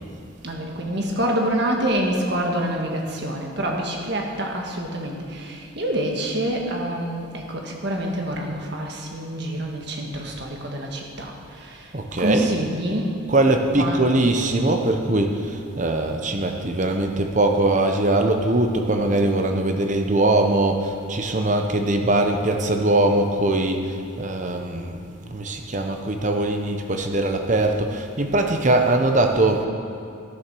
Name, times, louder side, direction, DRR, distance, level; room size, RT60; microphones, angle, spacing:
voice 1, 0.4-13.2 13.8-14.1, right 1 dB, 55° right, 0 dB, 1.7 m, -27 dB
voice 2, 11.9-12.5 13.3-25.0 25.3-29.7, right 2 dB, 35° right, 4 dB, 0.9 m, -21 dB
13.0 x 7.1 x 6.3 m, 2.5 s
head